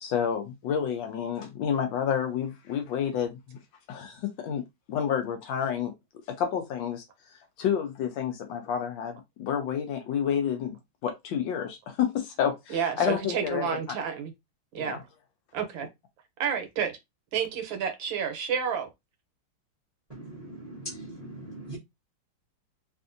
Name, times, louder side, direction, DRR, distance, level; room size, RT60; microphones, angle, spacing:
voice 1, 0.0-3.6 3.9-4.6 4.9-5.9 6.3-7.0 7.6-10.8 11.0-13.7 14.8-15.0, left 8 dB, 70° left, 1.2 m, -29 dB
voice 2, 12.7-14.3 14.7-15.0 15.5-15.9 16.4-17.0 17.3-18.9, right 7 dB, 70° right, 1.4 m, -30 dB
voice 3, 20.1-21.8, right 1 dB, 50° right, 0.4 m, -41 dB
3.5 x 2.5 x 2.5 m
omnidirectional pair, 2.3 m